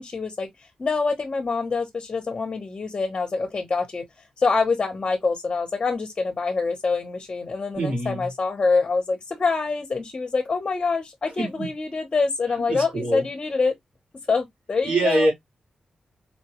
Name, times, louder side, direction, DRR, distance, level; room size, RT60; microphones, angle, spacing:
voice 1, 0.0-4.0 4.4-13.7 14.3-15.3, left 4 dB, 35° left, 0.8 m, -25 dB
voice 2, 7.7-8.3 11.4-11.7 12.7-13.2 14.8-15.3, right 2 dB, 80° right, 2.6 m, -24 dB
4.3 x 2.2 x 2.8 m
wide cardioid pair, 135°, 2 cm